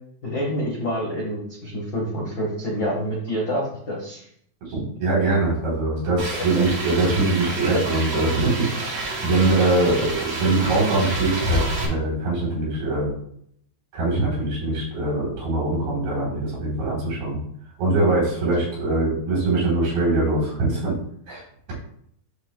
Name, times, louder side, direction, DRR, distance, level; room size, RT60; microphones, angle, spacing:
voice 1, 0.2-4.3 6.3-6.7 9.6-10.1, equal, 70° left, -3 dB, 1.0 m, -28 dB
voice 2, 4.7-8.9 9.2-13.1 13.9-17.4 17.8-21.0 21.3-21.4, right 2 dB, 70° right, -6 dB, 5.3 m, -22 dB
sound 1, 6.2-11.9, right 1 dB, 50° right, 2.4 m, -28 dB
11.0 x 6.1 x 2.2 m, 0.67 s
omnidirectional pair, 4.4 m